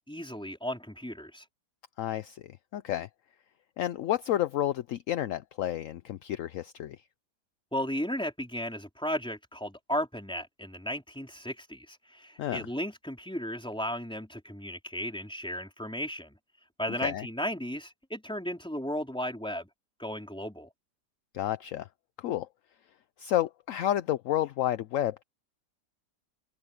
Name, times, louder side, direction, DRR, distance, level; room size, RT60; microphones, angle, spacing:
voice 1, 0.0-1.4 7.7-16.4 16.8-19.7 20.0-20.7, equal, 5° left, 3.9 m, -35 dB
voice 2, 2.0-3.1 3.8-7.0 12.4-12.6 17.0-17.3 21.3-21.9 22.2-22.5 23.2-25.2, left 12 dB, 70° left, 0.8 m, -30 dB
omnidirectional pair, 1.8 m